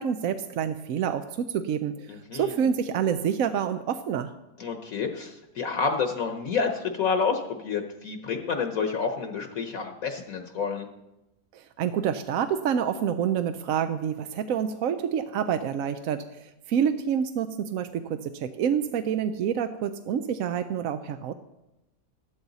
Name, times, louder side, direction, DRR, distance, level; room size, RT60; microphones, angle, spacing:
voice 1, 0.0-4.3 11.5-21.3, right 8 dB, 65° right, 9 dB, 0.9 m, -28 dB
voice 2, 2.1-2.5 4.6-10.9, left 5 dB, 60° left, 5 dB, 1.3 m, -29 dB
14.5 x 13.0 x 4.0 m, 0.93 s
omnidirectional pair, 1.7 m